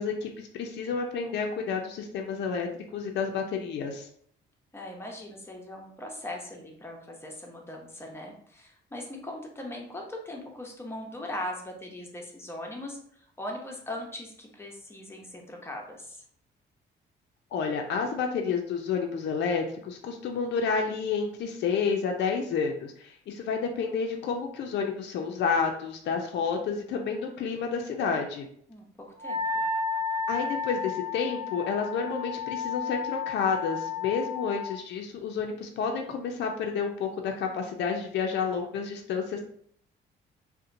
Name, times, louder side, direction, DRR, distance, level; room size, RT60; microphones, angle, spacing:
voice 1, 0.0-4.1 17.5-28.5 30.3-39.4, left 5 dB, 60° left, 3 dB, 0.4 m, -30 dB
voice 2, 4.7-16.2 28.7-28.9 29.2-29.6, left 1 dB, 10° left, 1 dB, 0.6 m, -40 dB
Wind instrument woodwind instrument, 29.2-34.8, left 5 dB, 80° right, 0.7 m, -32 dB
2.7 x 2.1 x 2.5 m, 0.63 s
cardioid pair, 90°, 20 cm